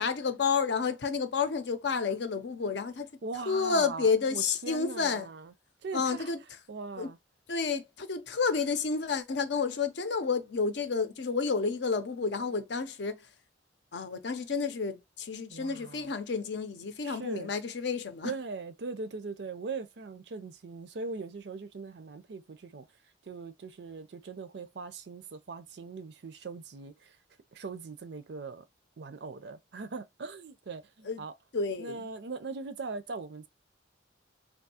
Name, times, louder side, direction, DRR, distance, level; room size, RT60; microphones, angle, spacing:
voice 1, 0.0-3.1 3.5-5.3 5.9-6.4 7.0-7.1 7.5-13.3 13.9-18.3 31.0-31.2 31.5-32.1, left 5 dB, 65° left, 0.6 m, -30 dB
voice 2, 3.2-5.5 5.8-6.3 6.7-7.2 15.5-16.1 17.0-17.5 18.2-22.9 23.3-27.2 27.5-28.6 29.0-31.3 31.8-33.5, right 4 dB, 60° right, 0.5 m, -40 dB
3.5 x 2.6 x 2.8 m
head